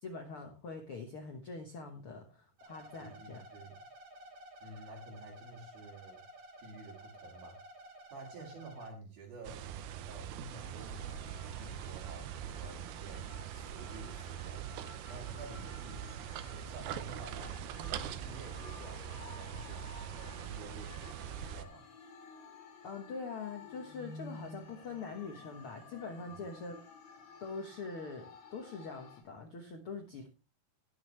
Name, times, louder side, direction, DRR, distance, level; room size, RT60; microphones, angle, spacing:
voice 1, 0.0-3.4 22.8-26.8 27.4-30.3, left 4 dB, 70° left, 4 dB, 1.3 m, -43 dB
sound 1, 2.6-8.9, right 1 dB, 55° right, 3.7 m, -53 dB
voice 2, 3.0-3.8 4.6-6.3 6.6-7.6 8.1-9.7 10.0-14.7 15.0-16.0 16.5-21.9 26.3-26.4, right 3 dB, 70° right, -1 dB, 4.1 m, -50 dB
sound 2, 9.4-21.7, right 9 dB, 85° right, 2.7 m, -43 dB
sound 3, 10.5-29.2, left 4 dB, 55° left, 3.6 m, -54 dB
18.5 x 6.5 x 3.2 m, 0.34 s
omnidirectional pair, 4.4 m